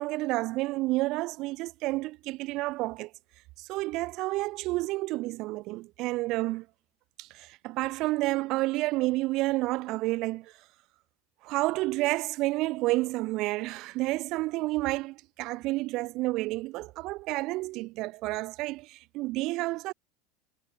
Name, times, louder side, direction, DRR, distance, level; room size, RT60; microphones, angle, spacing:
voice 1, 0.0-3.1 3.6-6.7 7.2-10.5 11.4-19.9, right 20 dB, 45° right, 3.6 m, -30 dB
supercardioid pair, 165°, 0 cm